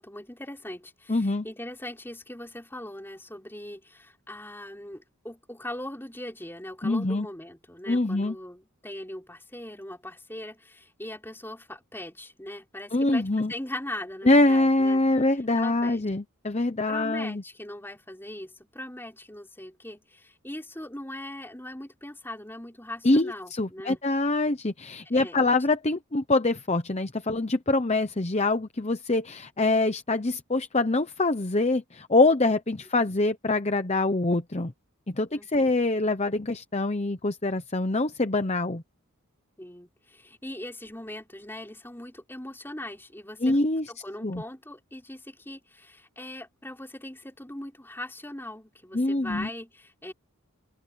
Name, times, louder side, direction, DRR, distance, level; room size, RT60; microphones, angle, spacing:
voice 1, 0.0-15.0 15.5-16.0 16.9-24.0 25.1-25.4 35.3-35.7 39.6-43.6 43.9-50.1, left 1 dB, 10° left, 4.7 m, -40 dB
voice 2, 1.1-1.4 6.8-7.3 7.9-8.3 12.9-13.5 14.2-17.4 23.0-34.7 35.1-38.8 43.4-43.9 44.2-44.4 48.9-49.5, left 2 dB, 30° left, 0.8 m, -24 dB
open air
head